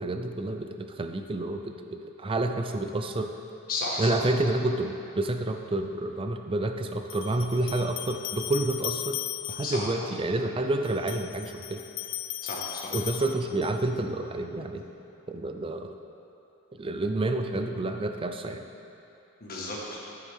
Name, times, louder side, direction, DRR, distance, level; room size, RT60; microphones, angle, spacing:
voice 1, 0.0-3.3 4.0-9.2 9.5-11.8 12.9-14.8 15.3-15.9 16.8-18.6, right 2 dB, 25° right, 6 dB, 0.4 m, -29 dB
voice 2, 3.7-4.3 9.6-9.9 12.4-13.0 19.4-20.0, left 2 dB, 40° left, -4 dB, 1.7 m, -33 dB
sound 1, 7.1-9.9 10.8-13.9, left 13 dB, 60° left, 0.4 m, -37 dB
10.0 x 9.3 x 3.7 m, 2.9 s
head